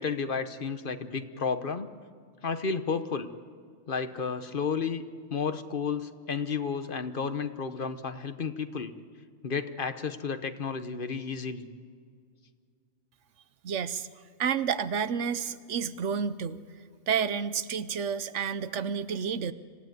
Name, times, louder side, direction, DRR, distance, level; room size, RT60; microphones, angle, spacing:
voice 1, 0.0-1.9 2.4-3.3 3.9-5.0 5.3-8.9 9.4-11.7, left 5 dB, 50° left, 10 dB, 1.1 m, -32 dB
voice 2, 13.6-14.1 14.4-16.6 17.1-19.5, right 7 dB, 80° right, 14 dB, 1.2 m, -30 dB
26.5 x 16.5 x 9.3 m, 2.1 s
omnidirectional pair, 1.2 m